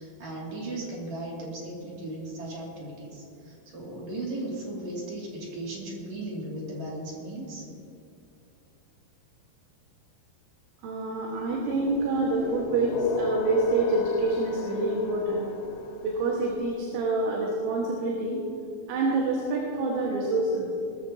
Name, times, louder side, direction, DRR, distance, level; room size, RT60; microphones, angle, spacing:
voice 1, 0.0-7.7, right 1 dB, 45° right, -4 dB, 3.2 m, -36 dB
voice 2, 10.8-15.5 16.0-18.5 18.9-20.7, right 2 dB, 75° right, -3 dB, 4.0 m, -27 dB
sound 1, 11.5-16.5, left 2 dB, 80° left, 3.2 m, -35 dB
21.5 x 13.5 x 2.8 m, 2.5 s
omnidirectional pair, 5.5 m